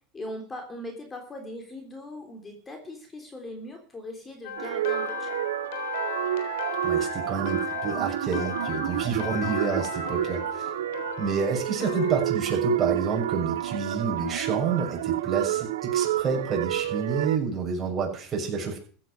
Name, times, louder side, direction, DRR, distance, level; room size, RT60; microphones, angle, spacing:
voice 1, 0.1-5.5, left 1 dB, 20° left, 4 dB, 3.5 m, -40 dB
sound 1, 4.4-12.3, left 8 dB, 75° left, 3.7 m, -36 dB
sound 2, 4.6-17.4, right 13 dB, 90° right, 0.8 m, -29 dB
voice 2, 6.8-10.7 11.2-18.8, right 5 dB, 25° right, -1 dB, 6.6 m, -29 dB
15.5 x 9.2 x 6.3 m, 0.43 s
supercardioid pair, 120°, 0 cm